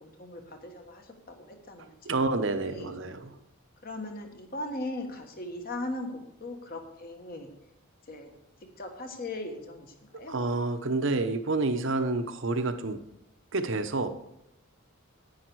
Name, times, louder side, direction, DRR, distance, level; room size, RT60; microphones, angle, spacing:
voice 1, 0.0-1.9 2.6-2.9 3.8-6.1 6.4-7.5 8.1-8.3 8.8-10.4, left 1 dB, 40° left, 5 dB, 1.4 m, -39 dB
voice 2, 2.0-3.4 10.3-13.0 13.5-14.1, right 3 dB, 60° right, 9 dB, 0.8 m, -28 dB
10.5 x 9.1 x 4.6 m, 0.84 s
head